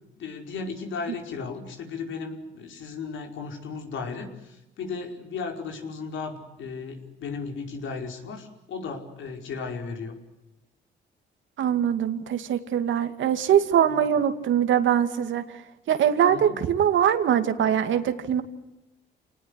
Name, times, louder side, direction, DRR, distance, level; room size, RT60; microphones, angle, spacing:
voice 1, 0.2-10.2 13.8-14.0 16.3-16.5, left 4 dB, 75° left, 4 dB, 5.0 m, -35 dB
voice 2, 11.6-15.6 15.9-18.4, right 9 dB, 75° right, 9 dB, 2.5 m, -22 dB
28.5 x 19.0 x 9.9 m, 0.96 s
cardioid pair, 90°, 20 cm